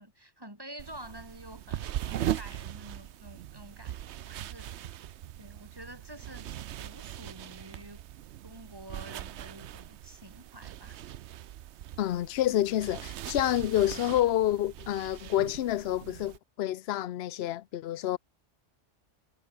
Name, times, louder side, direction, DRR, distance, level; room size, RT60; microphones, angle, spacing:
voice 1, 0.0-4.9 5.4-6.5 6.8-8.0 8.4-11.0, right 1 dB, 20° right, 5.4 m, -48 dB
sound 1, 0.8-16.4, right 12 dB, 70° right, 0.9 m, -40 dB
voice 2, 12.0-18.2, left 13 dB, 65° left, 0.8 m, -28 dB
omnidirectional pair, 1.3 m